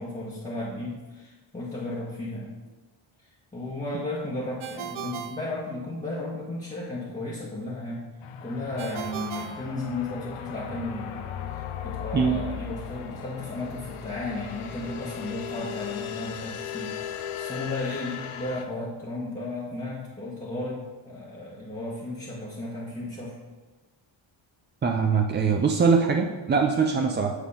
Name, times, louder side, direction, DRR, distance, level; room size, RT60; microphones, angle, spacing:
voice 1, 0.0-2.5 3.5-8.0 8.4-23.4 26.9-27.1, left 2 dB, 15° left, -7 dB, 1.2 m, -34 dB
Ringtone, 4.6-6.3 8.8-10.5, right 9 dB, 75° right, 0.6 m, -38 dB
sound 1, 8.2-18.6, left 9 dB, 75° left, 0.7 m, -37 dB
voice 2, 24.8-27.3, right 5 dB, 25° right, 3 dB, 0.3 m, -22 dB
8.8 x 3.6 x 5.5 m, 1.2 s
wide cardioid pair, 135°, 49 cm